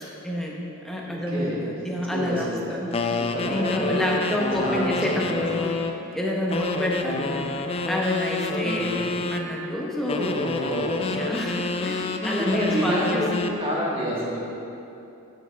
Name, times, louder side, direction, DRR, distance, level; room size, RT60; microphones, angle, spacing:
voice 1, 0.2-0.6 0.8-3.0 3.5-5.7 6.1-7.4 7.9-8.9 9.3-10.4 11.0-13.2, left 1 dB, ahead, -3 dB, 0.9 m, -28 dB
voice 2, 1.3-2.8 3.2-4.1 4.5-5.0 5.2-5.4 7.0-7.5 8.6-9.1 10.1-11.1 12.1-14.4, equal, 25° right, -5 dB, 1.6 m, -29 dB
sound 1, 2.9-6.0 6.5-9.5 10.1-13.6, left 3 dB, 30° left, 0.3 m, -28 dB
9.5 x 6.7 x 3.4 m, 2.8 s
head